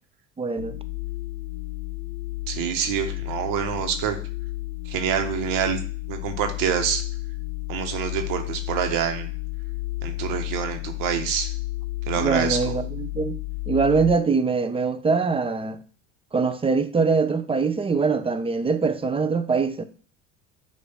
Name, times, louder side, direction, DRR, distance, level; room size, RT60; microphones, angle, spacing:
voice 1, 0.4-0.8 12.2-13.4 13.7-15.8 16.3-19.8, right 4 dB, 15° right, 0.5 m, -23 dB
sound 1, 0.6-14.2, left 20 dB, 65° left, 0.7 m, -32 dB
voice 2, 2.5-4.2 4.9-5.8 6.1-7.0 7.7-9.3 10.0-11.5 12.1-12.6, right 8 dB, 65° right, 1.1 m, -26 dB
6.7 x 2.6 x 5.5 m
hypercardioid pair, 85°, 36 cm